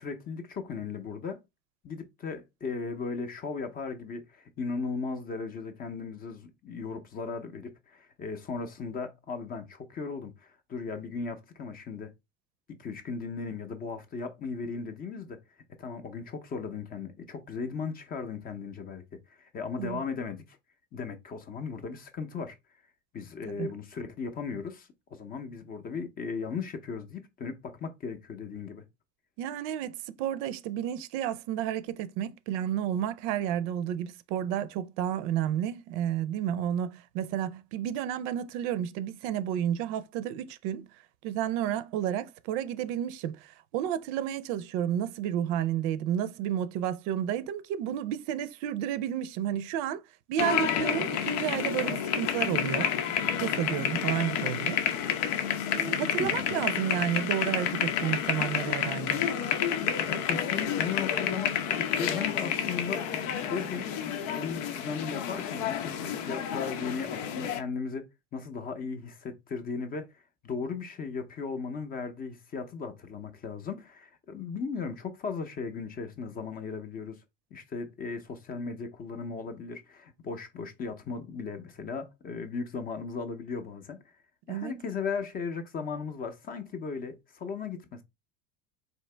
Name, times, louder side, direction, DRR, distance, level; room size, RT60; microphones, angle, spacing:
voice 1, 0.0-1.4 1.8-12.1 12.7-15.4 15.8-20.6 20.9-22.6 23.1-28.8 56.2-56.6 60.1-63.0 63.5-63.9 64.3-77.2 77.5-84.0 84.5-88.0, left 5 dB, 25° left, 0.5 m, -37 dB
voice 2, 29.4-40.9 41.2-50.0 50.3-52.9 53.4-54.8 55.7-59.3 84.5-84.7, right 10 dB, 70° right, 0.5 m, -31 dB
sound 1, 50.4-67.6, left 8 dB, 85° left, 0.8 m, -30 dB
4.4 x 2.8 x 3.2 m
cardioid pair, 155°, 36 cm